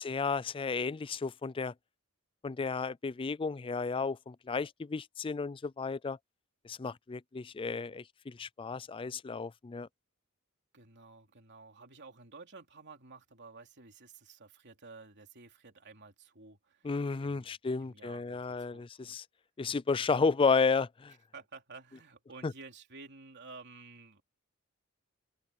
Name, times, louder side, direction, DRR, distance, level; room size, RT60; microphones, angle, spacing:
voice 1, 0.0-1.7 2.4-6.2 6.6-9.9 16.8-19.2 19.6-21.1 22.4-22.5, left 4 dB, 25° left, 0.4 m, -32 dB
voice 2, 10.7-16.9 17.2-19.2 21.3-24.2, right 4 dB, 55° right, 3.4 m, -52 dB
open air
head